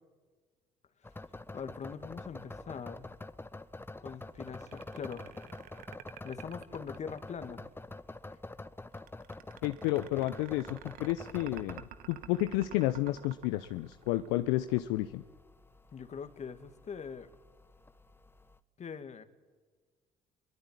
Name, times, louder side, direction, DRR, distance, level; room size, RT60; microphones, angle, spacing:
sound 1, 1.0-18.6, left 2 dB, 15° left, 1.3 m, -47 dB
voice 1, 1.5-3.1 4.0-5.4 6.2-7.6 8.3-8.4 15.9-17.3 18.8-19.2, left 6 dB, 50° left, 10 dB, 2.2 m, -42 dB
sound 2, 4.4-7.5 9.0-14.5, right 12 dB, 70° right, 1.2 m, -50 dB
voice 2, 9.6-11.8 12.1-15.2, left 16 dB, 80° left, 10 dB, 0.7 m, -31 dB
25.5 x 22.5 x 9.7 m, 1.5 s
hypercardioid pair, 55°, 15 cm